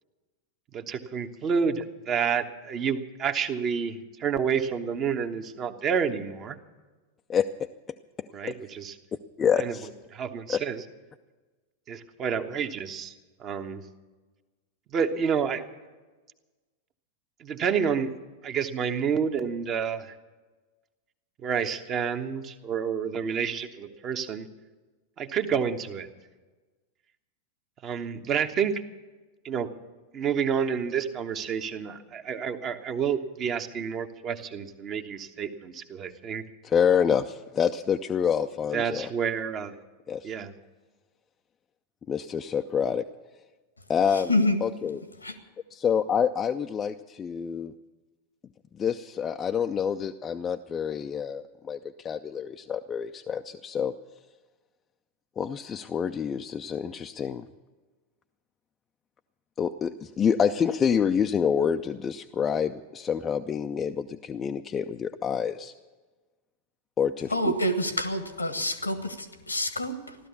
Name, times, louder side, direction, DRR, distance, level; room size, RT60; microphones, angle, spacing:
voice 1, 0.7-6.6 8.3-8.9 9.6-9.8 10.1-10.8 11.9-13.1 13.4-13.8 14.9-15.6 17.4-18.1 18.4-20.1 21.4-24.5 25.2-26.1 27.8-28.8 29.4-29.7 30.1-36.4 38.7-39.8 40.2-40.5, right 7 dB, 30° right, 7 dB, 1.1 m, -29 dB
voice 2, 7.3-7.7 8.2-8.3 9.4-9.9 10.5-10.6 36.6-39.1 40.1-40.3 42.1-43.0 43.9-44.3 44.6-45.0 45.7-47.7 48.8-53.9 55.4-57.5 59.6-65.7 67.0-67.5, left 7 dB, 20° left, 5 dB, 0.5 m, -27 dB
voice 3, 67.3-70.2, left 1 dB, 85° left, 11 dB, 1.4 m, -27 dB
15.5 x 12.5 x 7.0 m, 1.2 s
figure-of-eight pair, 90°, 0 cm